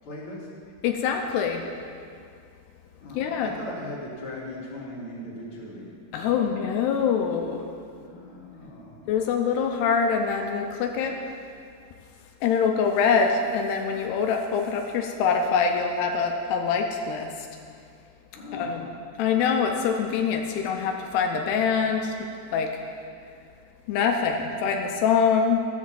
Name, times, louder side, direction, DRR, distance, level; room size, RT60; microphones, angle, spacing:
voice 1, 0.0-0.5 3.0-5.9 6.2-6.4 7.9-9.1 18.3-18.8, left 1 dB, 35° left, -6 dB, 2.9 m, -39 dB
voice 2, 0.8-1.7 3.1-3.5 6.1-7.7 9.1-11.2 12.4-17.5 18.5-18.9 19.2-22.8 23.9-25.6, left 6 dB, 85° left, 3 dB, 2.9 m, -24 dB
13.0 x 7.3 x 7.5 m, 2.3 s
omnidirectional pair, 4.6 m